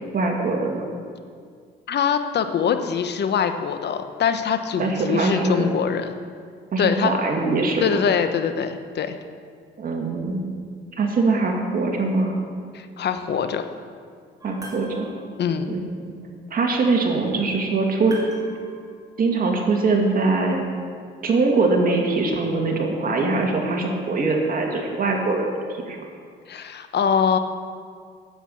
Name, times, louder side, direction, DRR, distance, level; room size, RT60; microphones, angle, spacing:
voice 1, 0.1-0.8 4.8-5.7 6.7-7.8 9.8-10.4 11.0-12.4 14.4-15.1 15.7-15.8 16.0-16.2 16.5-18.2 19.2-20.6 21.2-25.5 25.9-26.0, right 3 dB, 45° right, 0 dB, 2.4 m, -22 dB
voice 2, 1.9-6.1 6.8-7.1 7.8-9.2 12.7-13.6 15.4-15.7 26.5-27.4, left 7 dB, 60° left, 9 dB, 1.0 m, -23 dB
sound 1, 14.4-15.4 18.1-19.2, right 2 dB, 20° right, 2.5 m, -41 dB
10.0 x 8.2 x 8.6 m, 2.1 s
cardioid pair, 90°, 20 cm